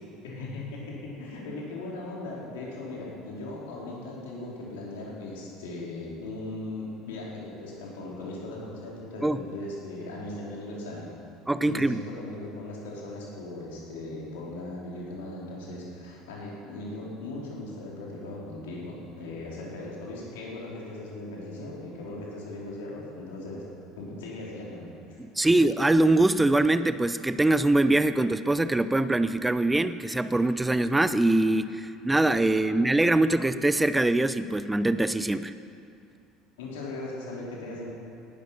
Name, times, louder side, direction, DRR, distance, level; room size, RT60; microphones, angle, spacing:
voice 1, 0.2-11.1 11.6-23.6 24.0-25.2 32.6-32.9 33.2-33.3 36.6-37.9, left 2 dB, 70° left, -4 dB, 4.3 m, -38 dB
voice 2, 11.5-12.0 25.2-35.5, right 2 dB, 10° right, 13 dB, 0.7 m, -23 dB
18.5 x 12.0 x 6.0 m, 2.5 s
figure-of-eight pair, 65°, 0 cm